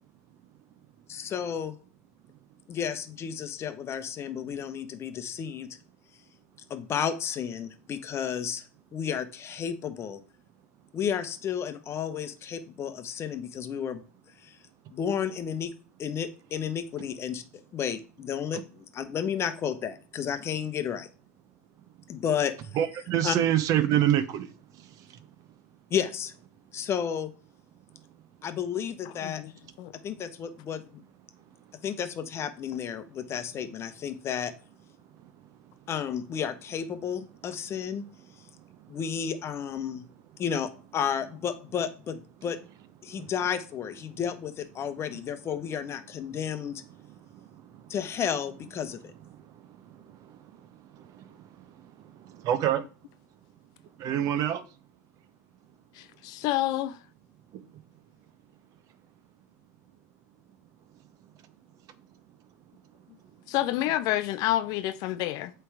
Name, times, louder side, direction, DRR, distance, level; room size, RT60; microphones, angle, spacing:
voice 1, 1.1-1.8 2.7-5.8 6.7-8.6 8.9-10.2 10.9-14.0 14.4-14.6 14.9-15.7 16.0-17.4 17.7-21.1 22.1-22.8 23.2-23.4 25.9-26.3 26.7-27.3 28.4-29.4 30.0-31.0 31.8-34.5 35.9-38.1 38.9-40.1 40.4-42.6 43.0-46.8 47.9-49.1, left 8 dB, 30° left, 0.9 m, -32 dB
voice 2, 22.7-24.5 52.4-52.8 54.0-54.6, right 11 dB, 40° right, 0.8 m, -25 dB
voice 3, 56.0-57.0 63.5-65.5, left 15 dB, 45° left, 0.4 m, -28 dB
7.8 x 3.4 x 4.7 m
hypercardioid pair, 115°, 9 cm